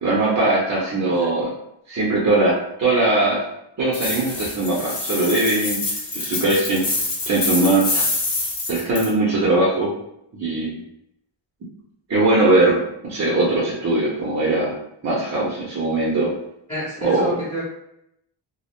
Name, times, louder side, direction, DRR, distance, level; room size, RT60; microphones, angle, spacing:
voice 1, 0.0-1.5 1.9-3.4 3.8-5.8 6.1-6.9 7.3-8.0 8.7-10.0 10.3-10.8 12.1-12.8 13.0-14.7 15.0-16.3 17.0-17.3, right 2 dB, 35° right, -6 dB, 0.5 m, -20 dB
voice 2, 0.7-1.3 16.7-17.6, right 1 dB, 10° left, -10 dB, 0.8 m, -29 dB
sound 1, 3.9-9.1, left 2 dB, 60° left, 0.8 m, -26 dB
2.3 x 2.0 x 2.9 m, 0.79 s
wide cardioid pair, 155°, 46 cm